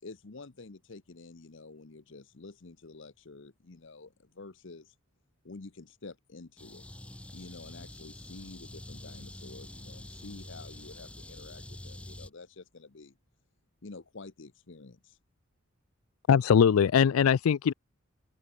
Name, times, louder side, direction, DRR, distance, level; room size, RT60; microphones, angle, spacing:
voice 1, 0.0-5.0 5.4-6.9 7.3-13.2 13.8-15.2, left 3 dB, 60° left, 0.9 m, -49 dB
sound 1, 6.6-12.3, left 1 dB, 5° left, 0.4 m, -46 dB
voice 2, 16.3-17.7, left 7 dB, 85° left, 0.4 m, -21 dB
open air
head